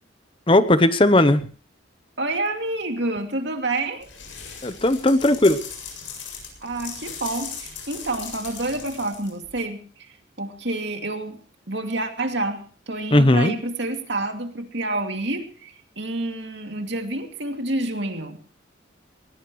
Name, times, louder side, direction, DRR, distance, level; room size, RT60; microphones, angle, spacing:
voice 1, 0.5-1.4 4.6-5.6 13.1-13.5, left 1 dB, 25° left, 12 dB, 0.9 m, -17 dB
voice 2, 2.2-4.1 6.6-11.4 11.7-18.4, right 2 dB, 65° right, 5 dB, 2.5 m, -28 dB
sound 1, 4.0-9.6, left 6 dB, 85° left, 7.7 m, -38 dB
20.5 x 20.0 x 3.1 m, 0.42 s
head